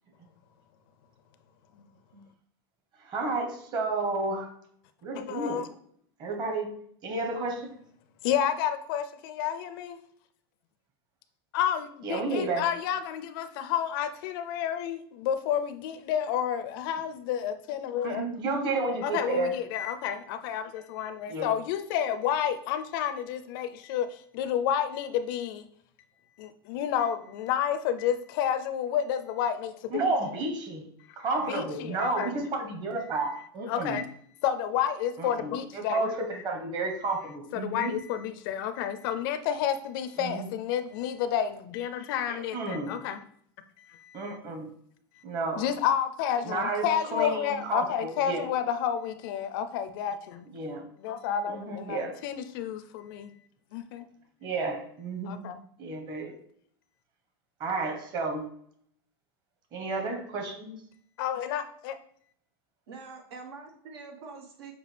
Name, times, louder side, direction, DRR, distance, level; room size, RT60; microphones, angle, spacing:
voice 1, 3.0-4.5 5.0-5.6 6.2-6.7 7.0-7.7 12.0-12.7 18.0-19.6 21.3-21.5 29.9-30.9 31.2-34.0 35.2-37.9 40.2-40.5 42.3-43.0 44.1-44.7 45.2-45.6 46.4-48.4 50.5-50.9 51.5-52.2 54.4-55.5 55.8-56.3 57.6-58.4 59.7-60.8, right 3 dB, 35° right, 2 dB, 1.2 m, -31 dB
voice 2, 5.1-5.7 8.2-10.0 11.5-18.3 19.0-25.6 26.4-30.1 31.1-32.3 33.7-34.1 34.4-36.4 37.5-43.2 43.8-44.4 45.6-50.5 51.0-53.3 53.7-54.0 55.3-55.6 61.2-62.0, left 9 dB, 60° left, 10 dB, 0.5 m, -30 dB
voice 3, 62.9-64.7, right 4 dB, 85° right, 2 dB, 1.3 m, -45 dB
6.7 x 2.3 x 3.3 m, 0.64 s
supercardioid pair, 140°, 13 cm